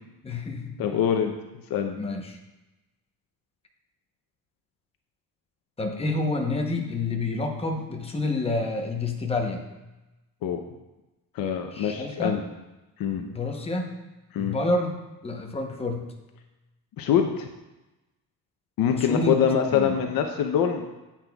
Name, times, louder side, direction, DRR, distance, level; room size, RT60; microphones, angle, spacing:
voice 1, 0.2-0.8 2.0-2.4 5.8-9.6 11.7-12.4 13.2-13.9 14.4-14.9 15.2-16.1 18.9-19.3 19.7-20.0, left 2 dB, 15° left, 2 dB, 0.8 m, -28 dB
voice 2, 0.8-1.3 1.7-2.0 10.4-10.6 11.3-12.4 13.0-13.2 14.3-14.6 17.0-17.5 18.8-20.9, left 8 dB, 70° left, 4 dB, 0.7 m, -24 dB
10.0 x 8.6 x 2.3 m, 1.0 s
cardioid pair, 175°, 37 cm